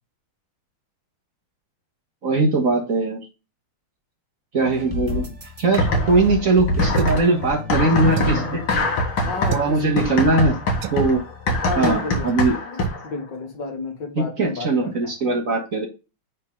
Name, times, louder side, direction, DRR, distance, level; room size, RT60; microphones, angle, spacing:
voice 1, 2.2-3.2 4.5-5.3 5.6-8.6 9.5-10.5 10.9-11.2 11.8-12.5 14.2-15.9, right 3 dB, 45° right, 1.7 m, -20 dB
sound 1, 4.6-12.6, left 4 dB, 20° right, 1.3 m, -34 dB
voice 2, 5.0-5.4 9.2-10.2 11.5-15.1, left 3 dB, 60° left, 1.9 m, -32 dB
sound 2, 5.8-6.4 6.7-13.1, left 1 dB, 75° left, 2.4 m, -23 dB
sound 3, 6.9-7.3 8.1-8.5 9.5-9.7 10.8-11.1 11.8-12.0 12.3-12.4 12.8-13.0, right 14 dB, 85° right, 1.5 m, -30 dB
8.9 x 3.9 x 3.7 m
omnidirectional pair, 2.3 m